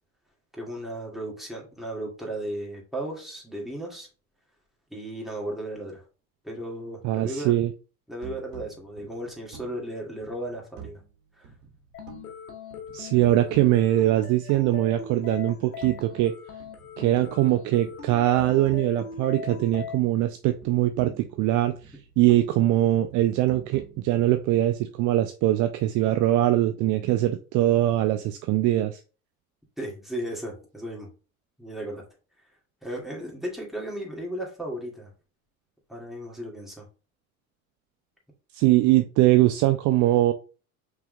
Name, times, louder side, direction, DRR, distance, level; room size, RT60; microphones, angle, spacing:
voice 1, 0.5-4.1 4.9-6.0 6.4-7.5 8.1-11.0 11.4-11.5 29.8-31.1 31.6-32.0 32.8-35.1 35.9-36.9, right 1 dB, ahead, -2 dB, 2.1 m, -35 dB
voice 2, 7.0-7.7 12.9-16.3 17.0-29.0 38.5-40.3, right 14 dB, 45° right, 8 dB, 0.5 m, -22 dB
sound 1, 8.2-11.1 11.4-12.4 12.7-14.9 15.3-16.3 16.6-20.2 20.4-22.6 22.9-24.7, right 7 dB, 65° right, 1.9 m, -48 dB
sound 2, 11.9-20.0, left 6 dB, 85° left, 0.9 m, -40 dB
5.6 x 3.7 x 2.3 m, 0.35 s
figure-of-eight pair, 65°, 43 cm